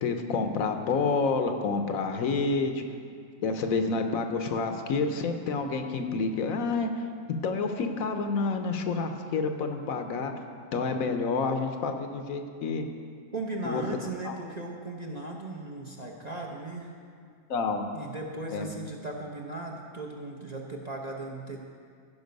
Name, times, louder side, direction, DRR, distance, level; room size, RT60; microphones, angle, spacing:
voice 1, 0.0-2.8 3.4-6.9 7.4-10.3 10.7-12.9 13.6-13.8 14.2-14.3 17.5-17.8 18.5-18.7, left 4 dB, 75° left, 6 dB, 1.2 m, -28 dB
voice 2, 13.3-16.9 17.9-21.6, right 2 dB, 35° right, -1 dB, 0.7 m, -37 dB
15.0 x 5.7 x 5.2 m, 2.2 s
omnidirectional pair, 1.5 m